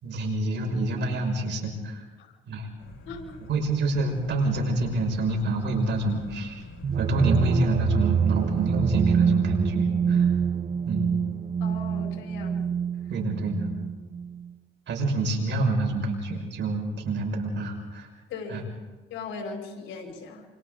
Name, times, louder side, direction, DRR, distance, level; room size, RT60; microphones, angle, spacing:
voice 1, 0.0-2.0 2.5-2.7 3.5-6.6 7.0-10.3 10.9-11.2 13.1-13.7 14.9-18.1 18.5-18.6, right 2 dB, 65° right, 2 dB, 6.0 m, -27 dB
sound 1, 2.8-9.1, left 3 dB, 70° left, 5.5 m, -44 dB
voice 2, 3.1-3.4 11.6-12.7 18.3-18.7 19.1-20.4, left 4 dB, 90° left, 1 dB, 4.8 m, -38 dB
sound 2, 6.8-14.5, right 7 dB, 35° right, 0.6 m, -26 dB
28.0 x 27.0 x 3.9 m, 1.3 s
cardioid pair, 90°, 20 cm